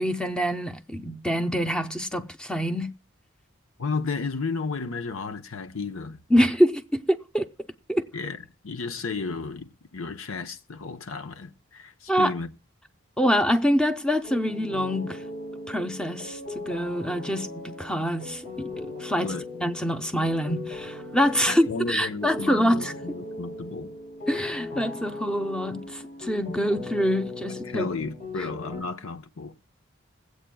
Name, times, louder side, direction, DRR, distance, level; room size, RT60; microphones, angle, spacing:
voice 1, 0.0-2.9 6.3-7.5 7.9-8.1 12.1-12.3 13.2-15.2 15.7-22.9 24.3-27.9, equal, 5° left, 0.7 m, -25 dB
voice 2, 3.8-6.2 8.1-12.5 19.2-19.5 21.5-24.0 27.7-29.5, left 4 dB, 90° left, 0.9 m, -33 dB
sound 1, 14.2-28.8, left 2 dB, 40° left, 3.9 m, -38 dB
21.5 x 8.2 x 2.3 m
head